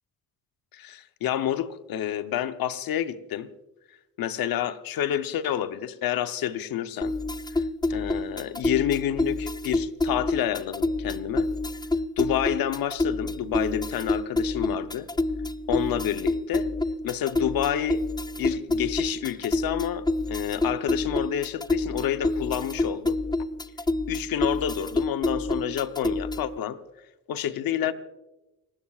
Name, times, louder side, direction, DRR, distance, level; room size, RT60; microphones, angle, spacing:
voice 1, 0.7-3.5 4.2-7.1 7.5-7.6 7.9-11.5 12.2-15.1 15.7-16.7 17.0-18.0 18.4-23.2 24.1-26.8 27.3-27.9, left 11 dB, 80° left, 0.9 m, -29 dB
sound 1, 7.0-26.6, left 2 dB, 10° left, 0.6 m, -28 dB
29.5 x 16.5 x 2.4 m
supercardioid pair, 55°, 35 cm